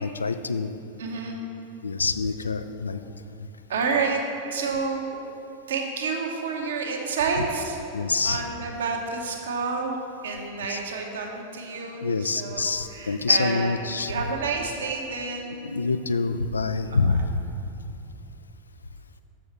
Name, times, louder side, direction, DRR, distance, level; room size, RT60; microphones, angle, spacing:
voice 1, 0.0-0.7 1.8-3.0 3.4-3.5 7.9-8.4 10.7-10.8 12.0-14.1 15.6-17.4, left 4 dB, 75° left, 10 dB, 0.3 m, -26 dB
voice 2, 1.0-1.4 3.7-4.2 4.5-5.2 5.7-7.8 8.2-10.0 10.2-13.7 14.1-15.6 16.9-17.2, right 4 dB, 60° right, 2 dB, 0.9 m, -29 dB
7.1 x 4.9 x 5.7 m, 2.8 s
figure-of-eight pair, 90°, 0 cm